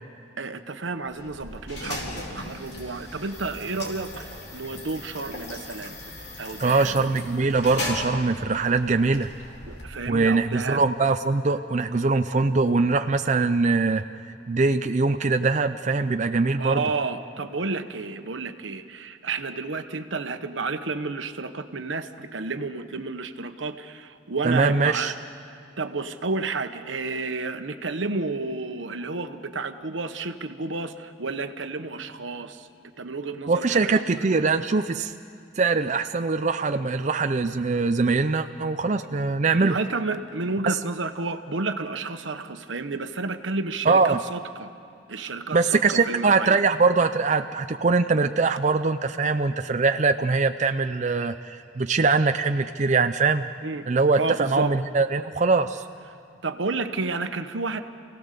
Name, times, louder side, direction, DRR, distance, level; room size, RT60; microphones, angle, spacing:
voice 1, 0.4-5.9 6.4-6.9 9.7-10.8 16.6-25.1 25.8-32.7 33.0-34.3 39.6-44.7 45.1-46.6 53.6-53.9 54.2-54.8 56.4-57.8, right 3 dB, 85° right, 8 dB, 1.1 m, -31 dB
sound 1, 1.0-10.4, left 1 dB, 60° left, 3.9 m, -37 dB
voice 2, 6.6-9.3 10.1-14.0 14.5-16.8 24.4-25.1 33.5-35.1 35.6-39.8 40.6-40.8 43.9-44.2 45.5-53.4 53.9-55.8, right 4 dB, 40° right, 7 dB, 0.5 m, -22 dB
28.0 x 17.5 x 6.7 m, 2.7 s
head